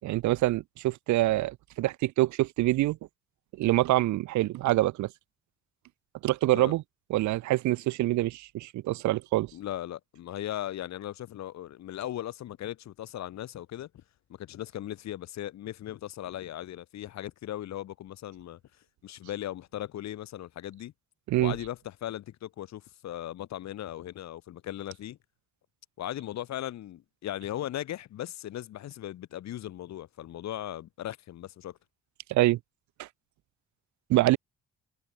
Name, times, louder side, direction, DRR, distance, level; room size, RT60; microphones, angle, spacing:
voice 1, 0.0-3.0 3.6-5.1 6.2-6.8 7.1-9.5 21.3-21.5 32.3-32.6 33.0-33.1 34.1-34.4, right 17 dB, 75° right, 0.6 m, -25 dB
voice 2, 9.5-13.9 14.3-18.6 19.0-20.9 21.4-25.2 26.0-31.8, left 12 dB, 65° left, 3.0 m, -38 dB
cardioid pair, 155°, 29 cm